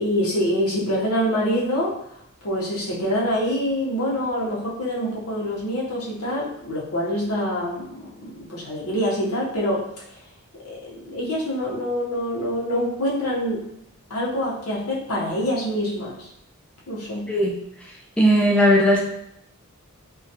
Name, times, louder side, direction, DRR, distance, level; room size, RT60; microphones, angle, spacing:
voice 1, 0.0-2.0 2.4-9.8 10.6-13.6 14.1-16.3 16.9-17.3, equal, 90° left, -5 dB, 0.8 m, -25 dB
voice 2, 18.2-19.0, equal, 5° left, -2 dB, 0.4 m, -17 dB
2.3 x 2.2 x 2.7 m, 0.74 s
head